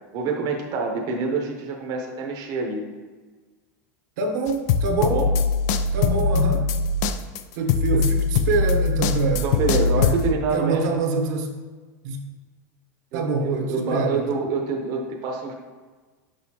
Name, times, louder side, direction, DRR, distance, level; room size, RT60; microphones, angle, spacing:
voice 1, 0.1-2.8 5.0-5.3 7.9-8.0 9.4-10.9 13.1-15.5, right 4 dB, 45° right, 1 dB, 0.8 m, -26 dB
voice 2, 4.2-5.2 5.9-6.7 7.5-9.4 10.0-10.1 10.5-11.5 12.0-12.3 13.1-14.4, right 3 dB, 75° right, 3 dB, 0.9 m, -25 dB
sound 1, 4.5-10.3, left 4 dB, 70° left, 0.4 m, -22 dB
6.3 x 5.2 x 2.9 m, 1.4 s
supercardioid pair, 125°, 9 cm